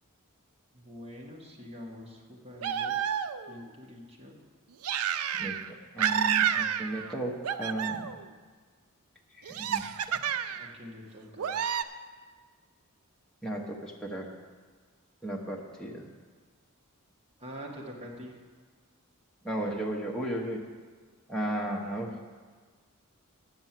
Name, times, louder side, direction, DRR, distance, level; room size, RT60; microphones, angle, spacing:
voice 1, 0.7-3.0 3.5-4.4 10.5-11.5 17.4-18.4, equal, 30° right, -2 dB, 1.6 m, -45 dB
sound 1, 2.6-3.6 4.8-5.7 6.0-7.1 7.4-8.2 9.5-10.7 11.4-11.8, right 8 dB, 80° right, 0.4 m, -30 dB
voice 2, 5.9-7.3 7.6-8.1 9.4-10.2 13.4-14.3 15.2-16.1 19.4-20.6 21.3-22.1, right 1 dB, 5° left, -2 dB, 1.0 m, -34 dB
8.9 x 7.0 x 7.4 m, 1.5 s
head